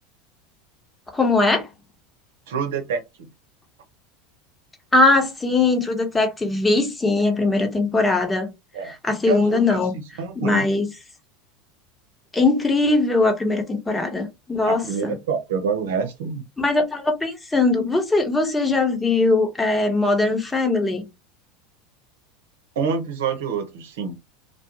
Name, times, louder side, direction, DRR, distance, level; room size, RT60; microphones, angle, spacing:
voice 1, 1.1-1.7 4.9-8.5 8.8-9.9 10.4-10.9 12.3-15.1 16.6-21.0, left 3 dB, 15° left, 0.9 m, -20 dB
voice 2, 2.5-3.3 8.7-8.9 9.3-9.8 10.2-10.7 14.7-16.4 22.8-24.2, right 6 dB, 70° right, 0.8 m, -27 dB
2.4 x 2.3 x 2.9 m
hypercardioid pair, 85°, 0 cm